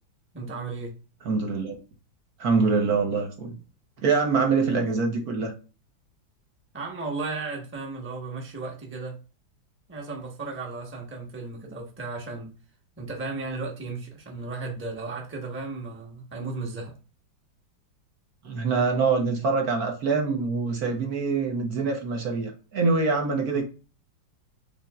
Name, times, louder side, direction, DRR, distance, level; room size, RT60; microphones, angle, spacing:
voice 1, 0.3-0.9 4.6-4.8 6.7-9.2 9.9-12.5 13.0-16.9, right 3 dB, 10° right, 0.8 m, -35 dB
voice 2, 1.2-1.8 2.4-3.6 4.0-5.5 18.4-23.6, right 4 dB, 55° right, 1.3 m, -24 dB
5.7 x 4.0 x 2.3 m
omnidirectional pair, 2.1 m